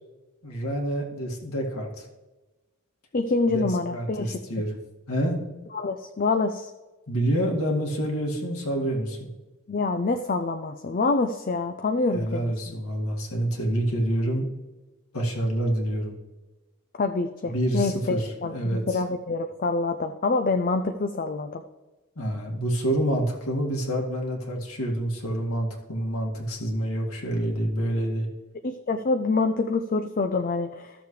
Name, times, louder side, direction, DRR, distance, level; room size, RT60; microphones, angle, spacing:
voice 1, 0.4-2.0 3.5-4.8 5.1-5.4 7.1-9.3 12.1-14.5 15.1-16.2 17.5-19.0 22.2-28.3, right 1 dB, 80° left, -1 dB, 2.1 m, -27 dB
voice 2, 3.1-4.3 5.7-6.7 9.7-12.5 17.0-21.6 28.6-30.9, left 3 dB, 40° left, 7 dB, 0.4 m, -26 dB
13.5 x 7.0 x 3.2 m, 1.1 s
head